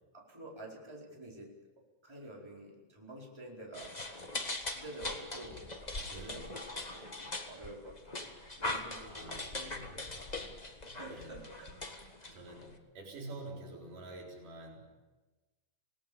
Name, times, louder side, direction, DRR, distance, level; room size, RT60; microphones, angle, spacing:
voice 1, 0.1-1.5 2.0-3.9 4.7-6.6 6.9-10.6 10.9-11.7 12.2-12.4, right 1 dB, 10° right, -3 dB, 4.6 m, -49 dB
sound 1, 3.7-12.7, left 2 dB, 35° left, 0.7 m, -41 dB
voice 2, 6.1-6.5 9.0-10.0 10.9-11.4 12.3-14.8, right 2 dB, 80° right, -1 dB, 5.9 m, -48 dB
28.0 x 18.5 x 7.2 m, 1.2 s
omnidirectional pair, 3.7 m